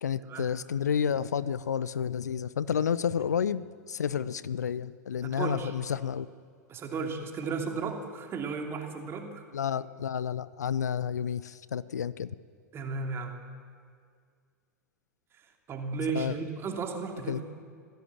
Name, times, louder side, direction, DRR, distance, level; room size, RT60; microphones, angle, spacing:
voice 1, 0.0-6.3 9.5-12.3 16.1-16.3 17.3-17.4, left 8 dB, 70° left, 18 dB, 0.6 m, -30 dB
voice 2, 5.2-5.7 6.7-9.5 12.7-13.4 15.3-17.4, right 4 dB, 25° right, 3 dB, 3.1 m, -34 dB
25.0 x 16.0 x 7.4 m, 2.1 s
figure-of-eight pair, 90°, 9 cm